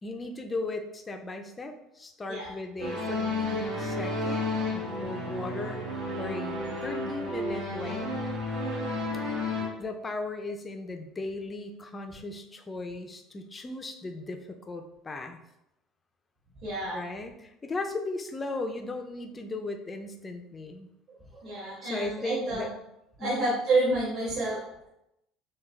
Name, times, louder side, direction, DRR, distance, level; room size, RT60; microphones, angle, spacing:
voice 1, 0.0-6.6 6.8-8.1 9.2-15.4 16.9-20.9 21.8-22.8 23.2-23.6, left 2 dB, 15° left, 5 dB, 0.4 m, -37 dB
sound 1, 2.8-9.7, left 2 dB, 70° right, 1.3 m, -32 dB
voice 2, 16.6-17.0 21.4-22.6 23.2-24.9, right 2 dB, 40° right, -8 dB, 1.3 m, -29 dB
5.8 x 2.3 x 3.2 m, 0.83 s
cardioid pair, 165°, 0 cm